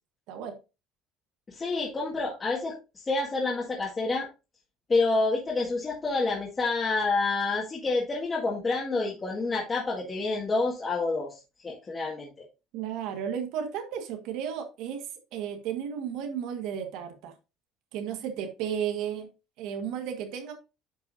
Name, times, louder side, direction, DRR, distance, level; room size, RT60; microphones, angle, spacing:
voice 1, 1.5-4.3 4.9-12.3, left 3 dB, 20° left, -6 dB, 1.9 m, -28 dB
voice 2, 12.7-15.0 15.3-17.3 17.9-19.3 19.6-20.5, right 8 dB, 70° right, 5 dB, 1.6 m, -33 dB
10.5 x 5.5 x 2.7 m, 0.28 s
cardioid pair, 160°, 0 cm